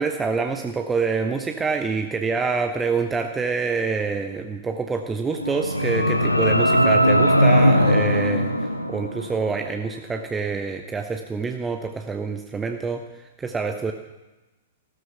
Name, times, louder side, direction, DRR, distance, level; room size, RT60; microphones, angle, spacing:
voice 1, 0.0-13.0 13.4-13.9, right 4 dB, 15° right, 5 dB, 0.9 m, -26 dB
sound 1, 5.3-9.5, equal, 90° left, 1.1 m, -19 dB
16.0 x 13.5 x 5.8 m, 1.1 s
figure-of-eight pair, 105°, 0 cm